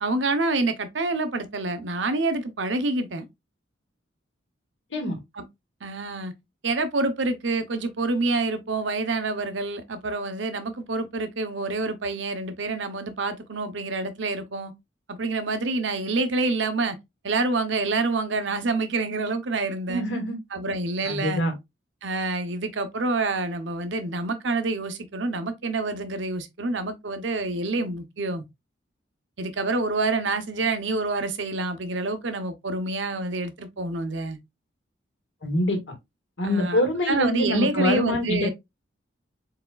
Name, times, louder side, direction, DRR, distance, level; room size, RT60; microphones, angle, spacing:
voice 1, 0.0-3.3 5.4-5.5 5.8-6.3 6.6-14.7 15.1-17.0 17.2-20.0 20.5-21.4 22.0-28.4 29.4-34.4 36.4-36.8 37.1-38.5, right 3 dB, 70° right, 0.8 m, -27 dB
voice 2, 19.9-20.4 21.0-21.5 35.4-35.8 36.4-38.5, left 1 dB, 75° left, 1.9 m, -25 dB
4.7 x 4.1 x 2.3 m
head